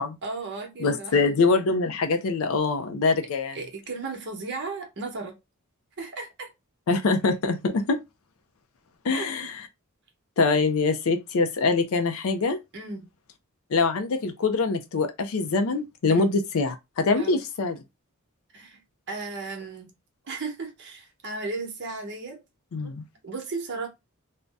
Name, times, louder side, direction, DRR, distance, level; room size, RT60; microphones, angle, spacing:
voice 1, 0.2-1.3 3.5-5.3 6.0-6.5 9.1-9.5 12.7-13.1 16.1-16.3 17.2-17.4 18.5-18.8 19.1-19.9 20.2-22.4 23.2-23.9, right 3 dB, 50° right, 0.9 m, -35 dB
voice 2, 0.8-3.6 6.9-8.0 9.0-9.6 10.4-12.6 13.7-17.8 22.7-23.0, left 4 dB, 65° left, 0.4 m, -24 dB
2.6 x 2.1 x 3.3 m
head